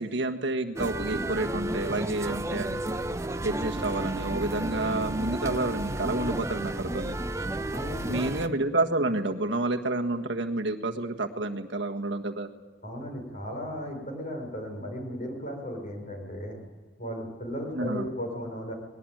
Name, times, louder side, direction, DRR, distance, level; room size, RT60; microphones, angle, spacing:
voice 1, 0.0-2.8 3.4-7.2 8.1-12.5 17.7-18.1, right 2 dB, 65° right, 4 dB, 1.6 m, -29 dB
sound 1, 0.8-8.5, right 1 dB, 15° right, 0.6 m, -32 dB
voice 2, 7.7-8.3 12.8-16.6 17.0-18.7, equal, 40° left, 3 dB, 5.8 m, -36 dB
20.5 x 19.0 x 9.2 m, 1.4 s
head